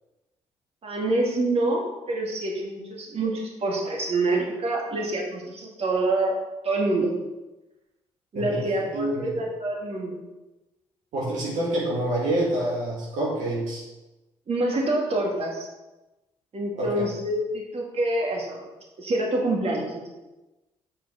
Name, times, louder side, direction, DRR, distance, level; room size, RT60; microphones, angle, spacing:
voice 1, 0.8-6.4 6.6-7.1 8.3-10.2 14.5-15.7 16.5-18.7 19.0-20.1, right 2 dB, 50° right, -1 dB, 2.2 m, -26 dB
voice 2, 8.9-9.4 11.1-13.8 16.8-17.1, right 1 dB, 70° right, -4 dB, 1.9 m, -27 dB
8.9 x 4.6 x 5.5 m, 1.1 s
supercardioid pair, 60°, 13 cm